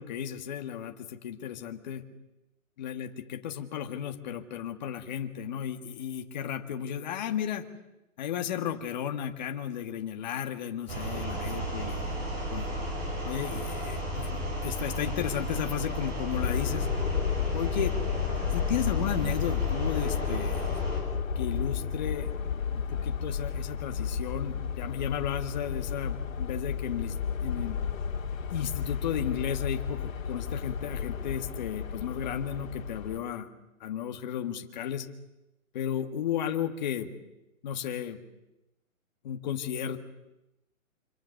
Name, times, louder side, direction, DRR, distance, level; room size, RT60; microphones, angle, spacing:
voice 1, 0.0-2.0 2.8-7.7 8.2-12.1 12.5-12.7 13.2-16.9 17.5-17.9 18.5-20.7 21.3-22.3 22.9-27.1 27.4-27.8 28.5-33.5 33.8-35.1 35.7-37.1 37.6-38.2 39.2-40.0, left 9 dB, 30° left, 5 dB, 1.7 m, -34 dB
sound 1, 10.9-21.0, equal, 20° right, 5.9 m, -34 dB
sound 2, 16.3-33.2, left 7 dB, 70° left, 2.7 m, -32 dB
27.0 x 26.0 x 6.5 m, 0.94 s
hypercardioid pair, 165°, 42 cm